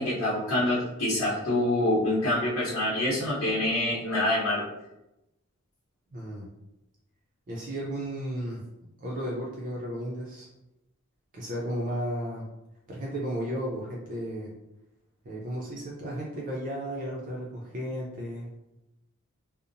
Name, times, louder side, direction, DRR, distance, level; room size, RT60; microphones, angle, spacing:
voice 1, 0.0-4.6, left 1 dB, 75° left, -9 dB, 0.8 m, -26 dB
voice 2, 6.1-6.5 7.5-8.6 9.0-10.5 11.3-12.5 12.9-14.5 15.2-18.5, equal, 40° right, -4 dB, 0.5 m, -34 dB
2.8 x 2.0 x 2.5 m, 0.91 s
head